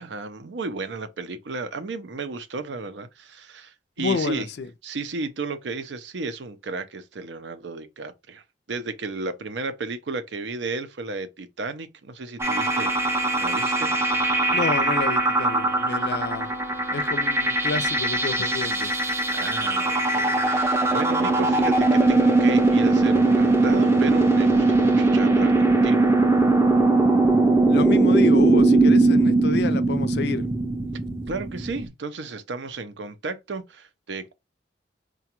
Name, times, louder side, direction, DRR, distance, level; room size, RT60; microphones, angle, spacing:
voice 1, 0.0-4.5 4.8-8.4 8.7-13.9 19.3-26.1 31.3-34.3, right 3 dB, 85° right, 0.6 m, -33 dB
voice 2, 4.0-4.7 14.5-16.5 16.9-18.9 27.7-30.5, left 4 dB, 65° left, 0.4 m, -29 dB
sound 1, 12.4-31.9, right 2 dB, 15° right, 0.5 m, -20 dB
4.8 x 2.3 x 2.9 m
head